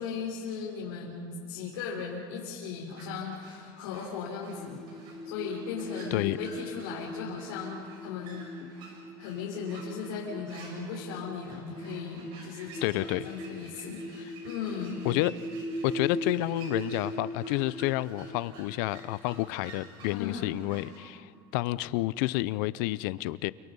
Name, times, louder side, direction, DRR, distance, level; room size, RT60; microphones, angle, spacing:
voice 1, 0.0-4.8 5.2-8.8 9.2-15.1 20.1-20.5, left 6 dB, 80° left, -4 dB, 4.7 m, -37 dB
sound 1, 2.9-21.0, right 3 dB, 45° right, 6.6 m, -51 dB
sound 2, 4.5-20.8, equal, 5° left, 1.7 m, -41 dB
voice 2, 12.8-13.3 15.0-15.3 15.8-23.5, left 18 dB, 60° left, 18 dB, 0.6 m, -30 dB
29.5 x 26.5 x 5.5 m, 2.4 s
cardioid pair, 170°, 12 cm